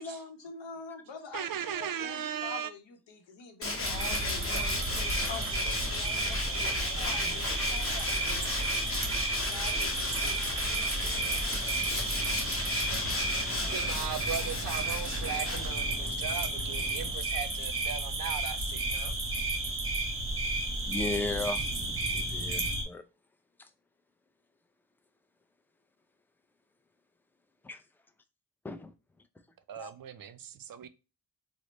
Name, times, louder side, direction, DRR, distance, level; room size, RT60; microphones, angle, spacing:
voice 1, 0.0-8.5 9.3-10.2, left 5 dB, 85° left, 0.8 m, -45 dB
voice 2, 1.3-2.7 13.7-19.1 29.7-30.9, right 9 dB, 55° right, 0.4 m, -38 dB
Tools, 3.6-16.1, left 2 dB, 30° left, 0.9 m, -35 dB
sound 1, 3.8-22.8, right 2 dB, 30° right, 1.0 m, -32 dB
voice 3, 11.0-11.4 20.4-21.6 22.1-23.0 23.6-23.7 27.6-27.8 28.6-28.9 29.8-29.9, left 3 dB, 5° left, 0.4 m, -37 dB
Mechanisms, 11.7-17.1, equal, 55° left, 0.9 m, -46 dB
3.1 x 2.1 x 4.0 m
cardioid pair, 55°, 43 cm